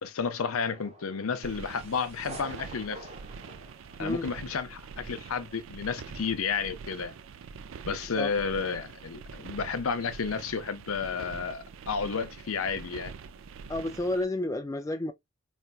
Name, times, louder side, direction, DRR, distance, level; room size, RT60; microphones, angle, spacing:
voice 1, 0.0-3.1 4.0-7.1 7.8-13.1, left 5 dB, 80° left, 0.6 m, -32 dB
sound 1, 0.6-4.7, right 2 dB, 30° right, 0.8 m, -48 dB
sound 2, 1.4-14.2, right 5 dB, 65° right, 0.4 m, -44 dB
voice 2, 13.7-15.1, left 1 dB, 15° left, 0.3 m, -30 dB
4.2 x 2.2 x 2.3 m
head